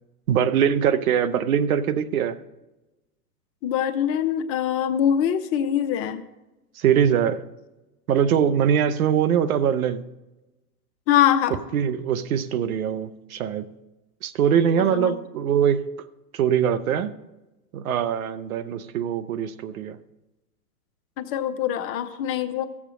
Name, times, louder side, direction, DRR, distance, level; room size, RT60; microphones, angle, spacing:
voice 1, 0.3-2.4 6.8-7.4 8.1-10.0 11.7-13.7 14.2-15.9 16.3-17.1 17.7-20.0, right 8 dB, 65° right, 0.9 m, -22 dB
voice 2, 3.6-6.2 11.1-11.6 14.8-15.1 21.2-22.6, left 10 dB, 30° left, 0.8 m, -23 dB
15.0 x 7.4 x 5.1 m
hypercardioid pair, 115°, 46 cm